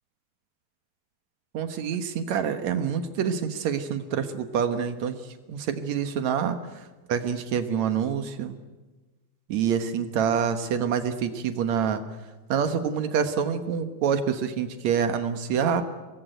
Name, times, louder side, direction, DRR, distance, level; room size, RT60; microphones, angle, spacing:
voice 1, 1.5-5.2 5.5-8.6 9.5-12.0 12.5-15.8, right 7 dB, 70° right, 8 dB, 1.7 m, -26 dB
24.0 x 21.0 x 9.2 m, 1.2 s
omnidirectional pair, 5.1 m